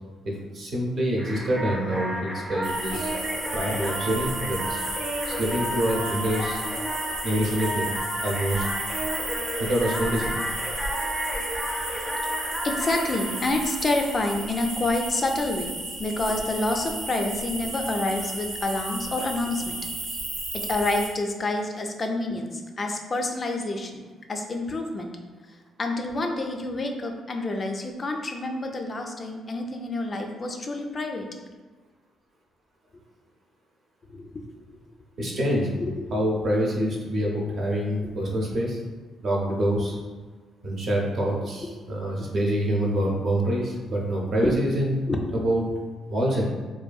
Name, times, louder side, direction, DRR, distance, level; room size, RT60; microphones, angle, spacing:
voice 1, 0.5-3.1 3.5-4.8 5.3-6.6 7.2-7.9 8.2-8.6 9.6-10.4 35.2-35.7 36.1-38.8 39.2-39.9 40.6-44.9 45.3-45.6 46.1-46.4, equal, 55° right, -2 dB, 0.6 m, -26 dB
sound 1, 1.2-14.6, right 1 dB, 15° right, 0.5 m, -32 dB
sound 2, 2.6-21.1, right 2 dB, 85° right, 0.8 m, -34 dB
voice 2, 12.6-15.7 16.0-19.9 20.5-24.0 24.3-25.1 25.8-31.3 34.1-34.5 35.8-36.1 41.6-41.8 42.2-42.3 44.4-44.5 45.1-45.2, left 2 dB, 35° left, 3 dB, 0.3 m, -28 dB
2.6 x 2.5 x 2.3 m, 1.4 s
cardioid pair, 90°, 0 cm